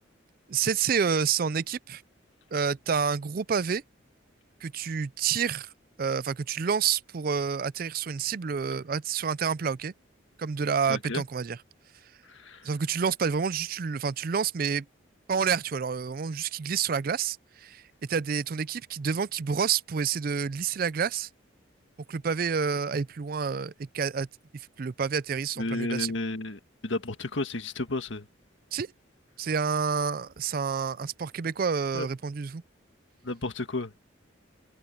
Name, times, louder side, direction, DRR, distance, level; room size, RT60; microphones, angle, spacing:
voice 1, 0.5-2.0 2.5-3.8 4.6-5.7 6.0-9.9 10.4-11.6 12.6-14.9 15.3-17.8 18.1-21.3 22.1-24.3 24.5-26.2 28.7-28.9 29.4-32.6, right 6 dB, 45° right, 0.4 m, -28 dB
voice 2, 10.9-11.2 12.3-12.7 25.6-28.3 31.9-32.1 33.2-33.9, left 2 dB, 70° left, 1.7 m, -32 dB
head